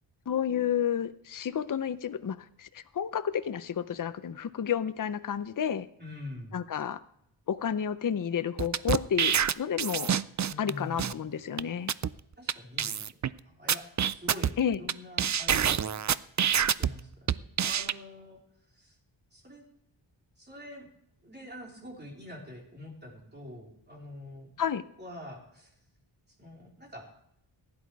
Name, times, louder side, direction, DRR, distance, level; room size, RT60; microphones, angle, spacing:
voice 1, 0.3-5.9 6.5-7.0 7.5-10.1 10.6-11.9 14.6-14.8 24.6-24.8, left 8 dB, 45° left, 13 dB, 0.6 m, -31 dB
voice 2, 6.0-6.6 10.5-11.2 12.4-13.0 13.4-16.0 16.8-17.1 17.6-18.4 18.7-19.0 19.3-19.7 20.4-20.9 21.2-25.8 26.3-27.1, left 1 dB, 20° right, -1 dB, 3.6 m, -45 dB
sound 1, 8.6-10.7 11.0-11.1 11.6-11.7 11.9-12.1 12.5-12.6 12.8-13.3 13.7-14.9 15.2-16.9 17.3-17.9, right 8 dB, 40° right, 0.4 m, -26 dB
15.5 x 10.5 x 4.7 m, 0.76 s
wide cardioid pair, 110°, 47 cm